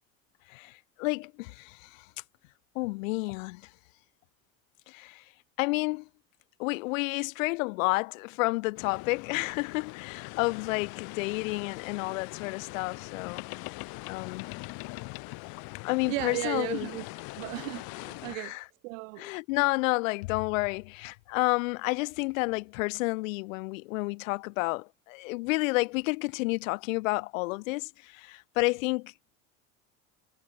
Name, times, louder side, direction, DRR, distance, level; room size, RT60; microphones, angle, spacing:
voice 1, 0.5-2.0 2.7-3.6 4.9-5.2 5.6-6.1 6.6-13.4 14.1-14.5 15.8-16.9 18.3-18.6 19.2-29.1, left 24 dB, 80° left, 0.9 m, -30 dB
sound 1, 8.8-18.4, left 26 dB, 65° left, 1.3 m, -42 dB
voice 2, 16.0-17.0 17.4-18.6 18.8-19.3, right 27 dB, 80° right, 1.1 m, -35 dB
supercardioid pair, 85°, 39 cm